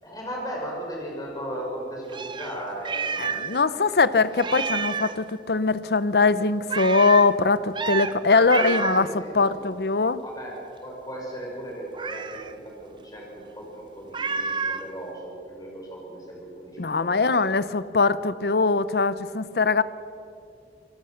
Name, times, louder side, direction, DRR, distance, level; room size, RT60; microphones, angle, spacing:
voice 1, 0.0-3.4 3.6-3.9 4.4-4.7 8.3-9.6 10.2-10.5 10.8-12.6 13.1-17.3, right 1 dB, 20° left, -2 dB, 5.4 m, -36 dB
Meow, 2.1-3.6 3.9-4.0 4.4-5.2 6.7-7.3 7.7-8.1 8.5-9.1 11.9-12.5 14.1-14.9, right 5 dB, 25° right, 0.7 m, -29 dB
voice 2, 3.2-9.1 9.3-10.2 16.8-19.8, left 4 dB, 65° left, 15 dB, 0.7 m, -22 dB
25.5 x 18.5 x 6.5 m, 2.7 s
head